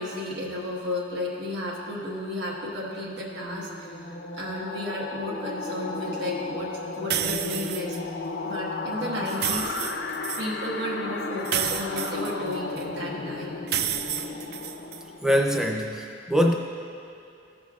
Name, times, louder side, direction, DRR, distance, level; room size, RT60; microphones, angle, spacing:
voice 1, 0.0-8.0 8.4-10.0 10.4-13.6, left 1 dB, 85° right, -5 dB, 1.3 m, -33 dB
sound 1, 2.9-15.5, left 3 dB, 65° left, 0.5 m, -34 dB
sound 2, 7.1-8.0 9.3-10.5 11.5-12.8 13.7-15.0, right 9 dB, 55° right, 0.3 m, -30 dB
voice 2, 15.2-16.5, equal, 5° right, 1 dB, 0.5 m, -23 dB
14.5 x 6.6 x 2.4 m, 2.6 s
head